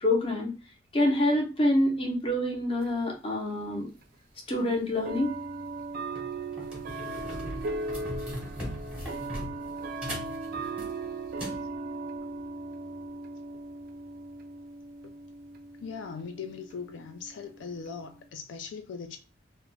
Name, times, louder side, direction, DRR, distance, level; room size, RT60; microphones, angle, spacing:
voice 1, 0.0-0.5 0.9-3.9 4.5-5.3, left 1 dB, 30° left, 0.6 m, -26 dB
sound 1, 2.8-2.9 4.0-4.1 5.0-18.3, right 3 dB, 50° right, 0.3 m, -38 dB
sound 2, 5.0-5.2 5.8-5.9 6.2-11.6, equal, 5° right, 0.9 m, -39 dB
voice 2, 15.8-19.2, left 5 dB, 80° left, 0.3 m, -39 dB
2.4 x 2.1 x 3.1 m
head